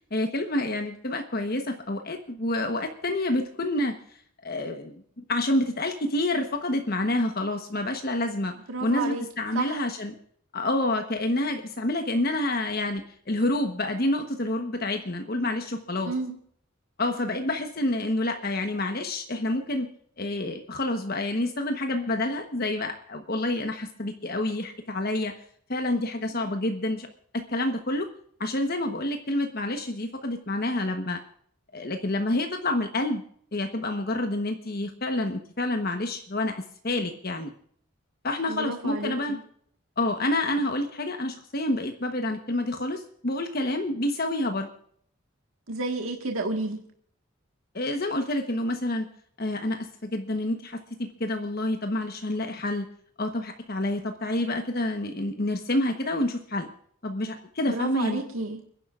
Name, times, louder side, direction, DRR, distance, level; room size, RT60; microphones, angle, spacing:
voice 1, 0.1-3.9 4.4-5.0 5.3-8.5 8.8-10.1 10.5-16.1 17.0-19.9 20.2-25.3 25.7-27.1 27.3-28.1 28.4-31.2 31.7-33.2 33.5-37.5 38.2-39.4 40.0-44.7 47.7-49.1 49.4-52.9 53.2-56.7 57.0-58.2, left 1 dB, 50° left, 5 dB, 1.1 m, -28 dB
voice 2, 8.7-9.2 9.5-9.8 16.1-16.4 26.3-26.5 38.5-39.4 45.7-46.8 57.7-58.6, right 3 dB, 90° right, 2 dB, 1.7 m, -31 dB
30.0 x 11.0 x 2.5 m, 0.64 s
head